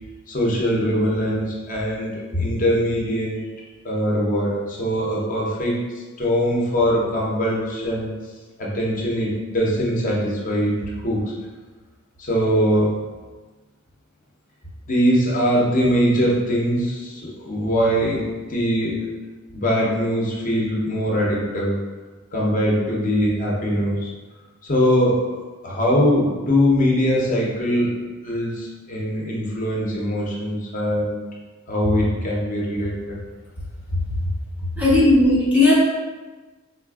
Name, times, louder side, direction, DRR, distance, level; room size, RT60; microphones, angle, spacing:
voice 1, 0.3-3.4 3.8-5.8 6.2-8.1 8.6-11.2 12.2-13.0 14.9-19.1 19.5-21.8 22.3-24.1 24.6-25.2 25.6-27.9 28.2-31.2 31.7-33.2 33.9-34.2 34.6-34.8, equal, 35° left, -4 dB, 0.6 m, -22 dB
voice 2, 34.8-35.7, left 2 dB, 5° right, -7 dB, 0.4 m, -15 dB
3.8 x 2.5 x 2.3 m, 1.3 s
head